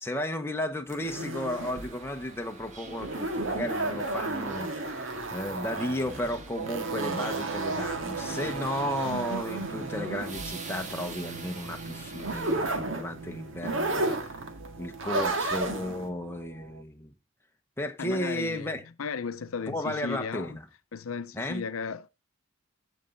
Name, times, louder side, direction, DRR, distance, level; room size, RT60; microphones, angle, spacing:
voice 1, 0.0-5.0 5.3-14.3 14.8-17.1 17.8-18.8 19.7-20.6 21.3-21.6, left 1 dB, 10° left, 1.1 m, -34 dB
sound 1, 0.9-16.1, right 2 dB, 70° right, 1.8 m, -33 dB
sound 2, 1.5-12.6, right 3 dB, 35° right, 1.6 m, -45 dB
sound 3, 6.6-16.8, right 4 dB, 85° right, 0.7 m, -40 dB
voice 2, 18.0-20.6 20.9-22.1, left 5 dB, 90° left, 0.6 m, -35 dB
15.0 x 5.4 x 4.0 m
head